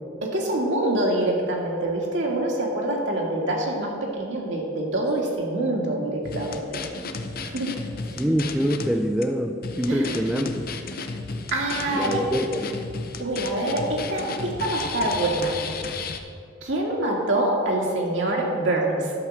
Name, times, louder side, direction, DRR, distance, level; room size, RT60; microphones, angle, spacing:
voice 1, 0.2-6.8 7.4-7.7 9.9-10.2 11.5-12.2 13.2-15.6 16.6-19.1, right 1 dB, 70° right, -1 dB, 1.9 m, -25 dB
sound 1, 6.2-8.9 9.2-9.3 9.6-16.2, left 4 dB, 50° left, 0.6 m, -33 dB
voice 2, 8.2-10.7 11.9-12.8, equal, 5° right, 4 dB, 0.4 m, -25 dB
11.5 x 4.6 x 7.2 m, 2.5 s
head